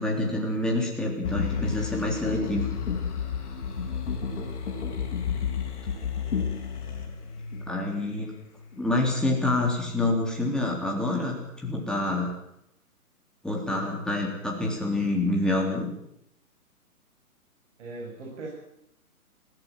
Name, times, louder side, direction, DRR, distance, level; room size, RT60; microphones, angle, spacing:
voice 1, 0.0-2.7 7.7-8.3 8.8-12.3 13.4-15.9, left 2 dB, ahead, -2 dB, 3.5 m, -27 dB
sound 1, 1.2-8.2 8.7-8.8, left 6 dB, 50° left, 6.2 m, -31 dB
voice 2, 3.9-4.5 17.8-18.5, right 3 dB, 50° right, -2 dB, 7.5 m, -41 dB
20.5 x 17.5 x 7.7 m, 0.77 s
figure-of-eight pair, 140°, 46 cm